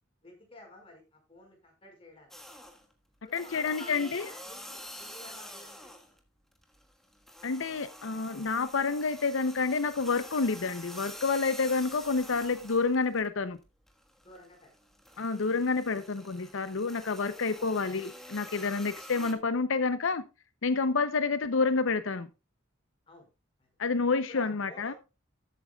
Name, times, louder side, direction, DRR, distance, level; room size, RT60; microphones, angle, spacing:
voice 1, 0.2-2.3 3.2-5.9 14.2-14.7 15.1-15.2 15.9-16.1 17.5-17.7 23.1-23.3 23.6-23.7 24.3-25.0, left 1 dB, 25° left, 1 dB, 5.2 m, -52 dB
sound 1, 2.3-2.9 3.3-6.2 6.5-13.3 13.6-19.3, equal, ahead, 1.4 m, -47 dB
voice 2, 3.3-4.3 7.4-13.6 15.2-20.2 20.6-22.3 23.8-24.9, left 4 dB, 65° left, 12 dB, 0.6 m, -29 dB
13.5 x 8.7 x 2.3 m, 0.28 s
head